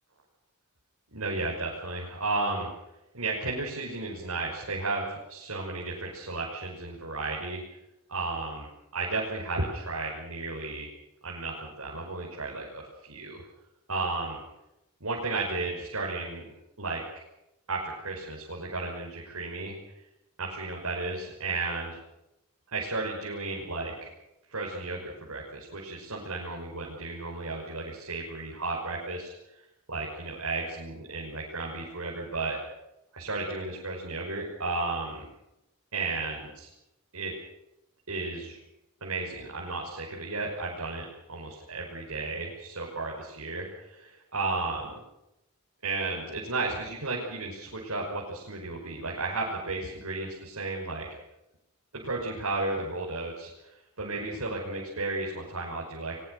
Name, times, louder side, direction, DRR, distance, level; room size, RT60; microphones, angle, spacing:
voice 1, 1.1-2.7 3.1-7.6 8.1-8.7 8.9-10.9 11.2-13.4 13.9-14.4 15.0-16.4 16.8-17.0 17.7-19.8 20.4-22.0 22.7-24.1 24.5-29.3 29.9-32.6 33.1-35.2 35.9-36.7 37.1-37.3 38.1-38.6 39.0-44.9 45.8-51.1 52.0-56.2, right 3 dB, 85° right, -3 dB, 5.8 m, -33 dB
22.5 x 22.0 x 6.8 m, 0.88 s
head